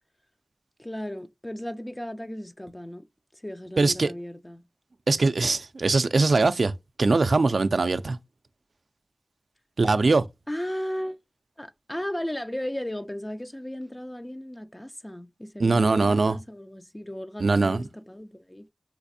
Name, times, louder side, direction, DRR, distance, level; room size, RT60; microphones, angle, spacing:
voice 1, 0.8-3.1 3.3-4.6 10.5-11.2 11.6-18.7, equal, 20° left, 0.4 m, -35 dB
voice 2, 3.8-4.1 5.1-6.7 7.0-8.2 9.8-10.3 15.6-16.4 17.4-17.8, right 3 dB, 80° right, 0.3 m, -21 dB
4.1 x 2.5 x 2.6 m
wide cardioid pair, 60°, 0 cm